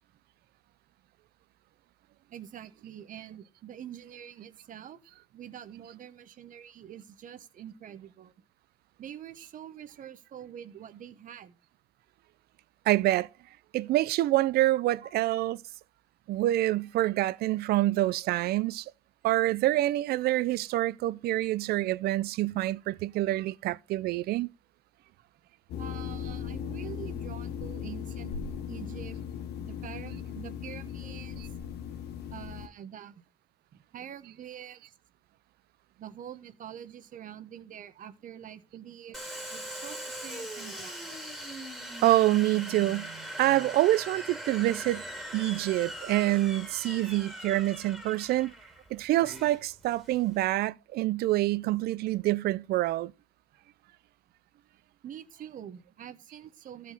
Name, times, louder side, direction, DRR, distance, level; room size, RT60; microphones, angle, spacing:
voice 1, 2.3-5.0 5.3-8.3 9.0-11.6 15.0-15.1 25.8-28.3 28.7-29.2 29.6-31.4 32.3-33.2 33.7-34.8 36.0-39.2 39.5-41.1 55.0-56.9, right 10 dB, 50° right, 1.0 m, -45 dB
voice 2, 12.9-13.3 13.7-15.6 16.3-18.9 19.2-24.5 31.4-31.5 42.0-43.1 43.4-45.0 45.3-48.5 48.9-53.1, right 16 dB, 70° right, 0.4 m, -26 dB
sound 1, 25.7-32.7, left 8 dB, 75° left, 1.1 m, -38 dB
Domestic sounds home sounds, 39.1-50.5, right 1 dB, ahead, 2.1 m, -41 dB
14.5 x 5.2 x 4.0 m
cardioid pair, 110°, 17 cm